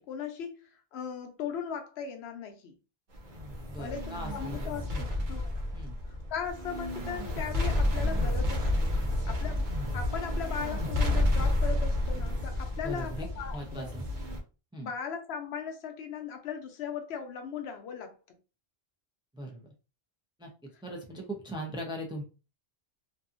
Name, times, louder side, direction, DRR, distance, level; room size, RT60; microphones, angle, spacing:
voice 1, 0.0-2.8 3.8-5.0 5.3-5.6 6.1-8.9 9.3-13.9 14.8-18.2, left 7 dB, 80° left, 0.9 m, -38 dB
sound 1, 3.1-14.4, left 1 dB, 55° right, 0.8 m, -30 dB
voice 2, 3.7-5.1 5.7-6.0 12.8-13.3 13.5-14.0 14.7-14.9 19.3-19.7 20.4-20.5 20.8-22.2, right 1 dB, 5° right, 0.4 m, -39 dB
2.6 x 2.4 x 2.5 m
omnidirectional pair, 1.1 m